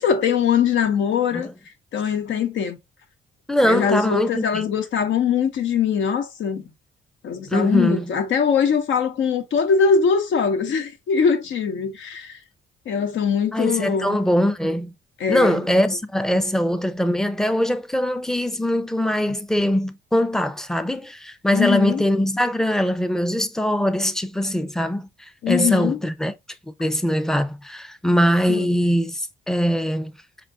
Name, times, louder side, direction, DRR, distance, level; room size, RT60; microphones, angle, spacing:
voice 1, 0.0-1.5 1.9-2.8 3.6-6.6 7.2-12.4 12.9-14.2 15.2-15.6 21.5-22.0 25.4-26.0 28.5-28.7, left 6 dB, 75° left, 1.1 m, -22 dB
voice 2, 3.5-4.7 7.5-8.1 13.5-14.9 15.3-26.3 26.8-30.1, equal, ahead, 0.5 m, -22 dB
5.2 x 2.4 x 3.6 m
cardioid pair, 90°, 20 cm